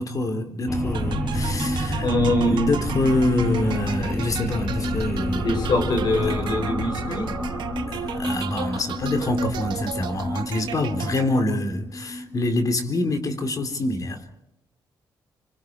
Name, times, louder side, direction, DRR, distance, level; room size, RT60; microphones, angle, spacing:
voice 1, 0.0-5.6 6.2-6.3 7.9-14.2, left 2 dB, 50° left, 6 dB, 3.8 m, -26 dB
sound 1, 0.7-13.5, equal, 20° left, 5.7 m, -29 dB
sound 2, 0.9-11.6, right 9 dB, 75° right, 1.5 m, -35 dB
voice 2, 2.0-2.7 5.3-7.3, left 1 dB, 65° left, 6 dB, 6.6 m, -23 dB
27.0 x 25.0 x 4.8 m, 0.83 s
cardioid pair, 85°, 8 cm